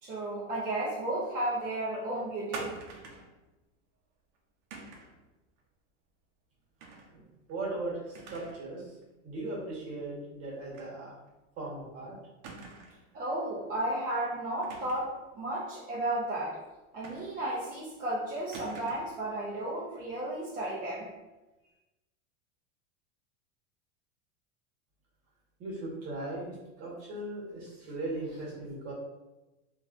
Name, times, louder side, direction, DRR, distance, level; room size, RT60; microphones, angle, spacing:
voice 1, 0.0-2.8 13.1-16.6 16.9-21.1, right 1 dB, 25° right, -8 dB, 0.5 m, -33 dB
sound 1, 2.5-3.3 4.7-5.2 6.8-7.1 7.5-7.6 8.1-8.7 9.0-9.1 10.7-10.9 11.3-11.4 12.4-13.1 14.6-15.2 17.0-17.6 18.5-19.2, right 3 dB, 70° right, 0.7 m, -45 dB
voice 2, 7.1-9.0 9.2-11.1 11.6-12.1 25.6-28.9, right 2 dB, 40° right, -4 dB, 1.3 m, -38 dB
3.1 x 2.4 x 2.4 m, 1.1 s
supercardioid pair, 140°, 36 cm